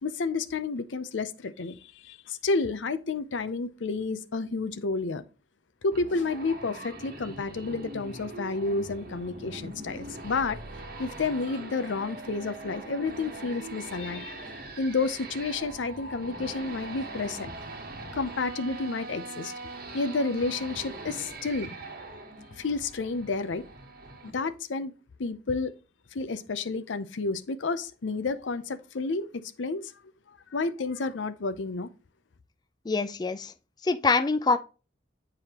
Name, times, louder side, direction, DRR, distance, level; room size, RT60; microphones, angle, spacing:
voice 1, 0.0-5.2 5.8-10.6 11.0-14.5 14.8-17.5 18.1-19.5 19.9-21.7 22.6-23.6 24.2-24.9 25.2-25.7 26.1-29.9 30.5-31.9, left 3 dB, 85° left, 0.6 m, -30 dB
sound 1, 5.9-24.3, right 2 dB, 50° right, 1.2 m, -42 dB
voice 2, 32.9-33.5 33.8-34.6, left 4 dB, 20° left, 0.4 m, -24 dB
9.1 x 4.9 x 2.9 m
head